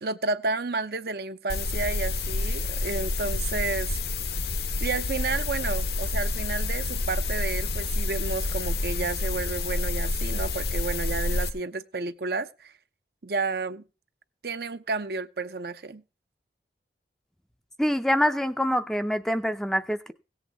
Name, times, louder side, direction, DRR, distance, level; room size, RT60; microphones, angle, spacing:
voice 1, 0.0-4.0 4.8-12.7 13.2-13.8 14.4-16.0, right 3 dB, 60° right, 0.6 m, -31 dB
sound 1, 1.5-11.5, left 2 dB, 65° left, 0.9 m, -28 dB
voice 2, 17.8-20.1, equal, ahead, 0.5 m, -25 dB
17.0 x 8.0 x 3.5 m
head